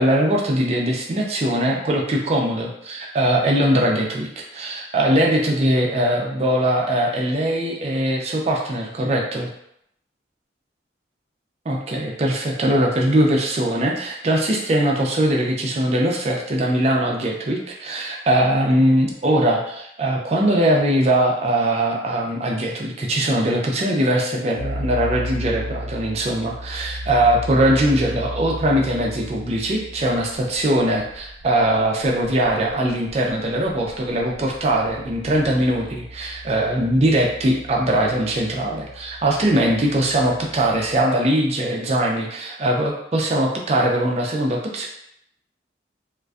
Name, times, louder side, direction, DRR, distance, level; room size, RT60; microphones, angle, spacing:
voice 1, 0.0-9.5 11.7-44.9, right 1 dB, 35° right, -1 dB, 0.4 m, -21 dB
sound 1, 24.6-41.0, equal, 85° left, 0.4 m, -35 dB
2.5 x 2.2 x 2.3 m, 0.74 s
head